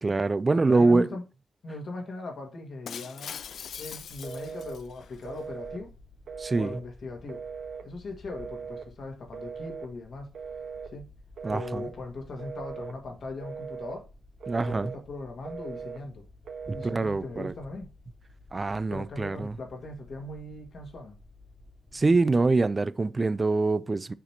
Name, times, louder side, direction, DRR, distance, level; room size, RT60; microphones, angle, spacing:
voice 1, 0.0-1.1 6.4-6.8 11.4-11.9 14.5-14.9 16.7-17.5 18.5-19.6 21.9-24.1, right 3 dB, 30° right, 0.4 m, -25 dB
voice 2, 0.5-1.2 1.6-3.3 3.8-5.9 6.6-7.5 7.8-10.3 10.9-11.1 11.5-14.1 14.6-16.3 16.7-17.9 18.9-21.1, left 2 dB, 65° left, 1.7 m, -39 dB
Shatter, 2.9-5.3, left 8 dB, 85° left, 0.3 m, -42 dB
sound 1, 3.3-22.2, left 2 dB, 25° left, 1.6 m, -54 dB
Telephone, 4.2-4.8 5.2-5.8 6.3-6.8 7.3-7.9 8.3-8.9 9.3-9.9 10.3-10.9 11.4-11.9 12.4-13.0 13.4-14.0 14.4-15.0 15.4-16.0 16.4-17.0, right 6 dB, 90° right, 0.7 m, -39 dB
6.6 x 3.1 x 5.7 m
wide cardioid pair, 140°, 0 cm